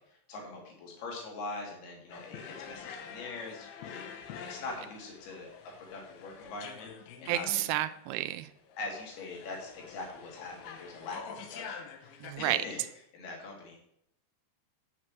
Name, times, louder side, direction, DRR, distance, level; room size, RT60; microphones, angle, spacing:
voice 1, 0.3-4.0 4.5-5.5 5.8-6.9 7.2-7.6 8.8-12.8 13.1-13.8, left 3 dB, 65° left, -1 dB, 4.3 m, -42 dB
sound 1, 2.1-12.3, left 7 dB, 90° left, 3.4 m, -46 dB
voice 2, 7.3-8.5 12.2-12.6, right 15 dB, 85° right, 12 dB, 2.2 m, -31 dB
7.7 x 6.2 x 7.4 m, 0.72 s
omnidirectional pair, 5.1 m